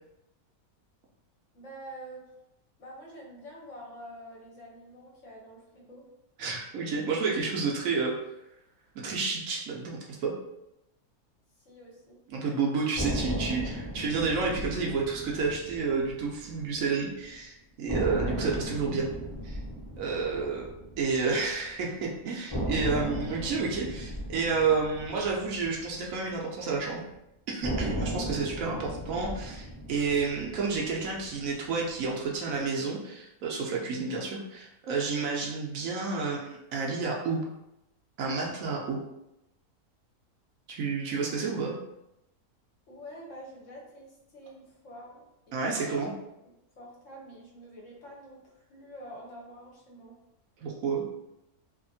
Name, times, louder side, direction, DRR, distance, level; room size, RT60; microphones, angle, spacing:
voice 1, 1.5-2.3 2.8-6.1 11.6-12.2 20.2-20.5 41.1-41.7 42.9-46.2 46.8-50.2, equal, 60° left, -2 dB, 1.0 m, -46 dB
voice 2, 6.4-8.1 9.0-10.3 12.3-19.1 19.4-19.6 20.0-20.7 21.0-27.0 27.5-37.4 38.2-39.0 40.7-41.7 45.5-46.1 50.6-51.0, right 4 dB, 70° right, -2 dB, 0.9 m, -30 dB
sound 1, 13.0-17.0 17.3-17.4 17.9-22.0 22.5-26.9 27.6-32.0, equal, 20° left, 0.7 m, -36 dB
2.7 x 2.5 x 2.6 m, 0.89 s
omnidirectional pair, 1.6 m